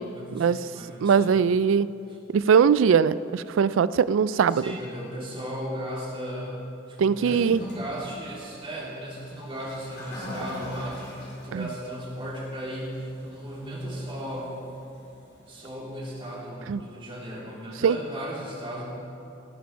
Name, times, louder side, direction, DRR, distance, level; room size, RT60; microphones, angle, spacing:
voice 1, 0.1-1.3 2.1-2.2 4.5-6.5 6.9-14.5 15.5-18.8, equal, 30° right, -5 dB, 3.1 m, -36 dB
voice 2, 1.0-1.9 2.3-4.6 7.0-7.6 11.5-11.7 16.7-16.8 17.8-18.0, right 6 dB, 75° right, 17 dB, 0.3 m, -21 dB
Toilet flush, 7.1-16.4, left 1 dB, 55° left, 3.9 m, -43 dB
17.5 x 10.5 x 4.5 m, 2.8 s
head